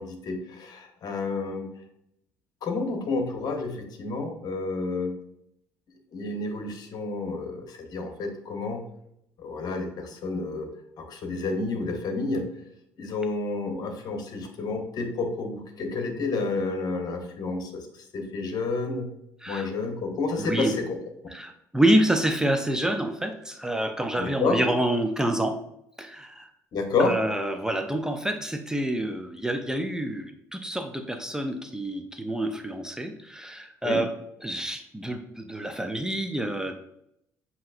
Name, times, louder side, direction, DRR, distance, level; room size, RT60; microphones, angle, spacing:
voice 1, 0.0-1.7 2.6-5.2 6.1-8.8 9.4-10.7 11.0-12.5 13.0-17.9 18.1-19.1 19.5-21.0 21.2-21.3 24.2-24.6 26.7-27.2 33.8-34.0, left 3 dB, 55° left, 4 dB, 1.0 m, -30 dB
voice 2, 20.4-20.8 21.3-25.6 26.0-26.5 27.0-34.1 34.4-36.9, right 1 dB, 10° right, 6 dB, 0.5 m, -27 dB
7.4 x 2.9 x 2.5 m, 0.77 s
hypercardioid pair, 55°, 8 cm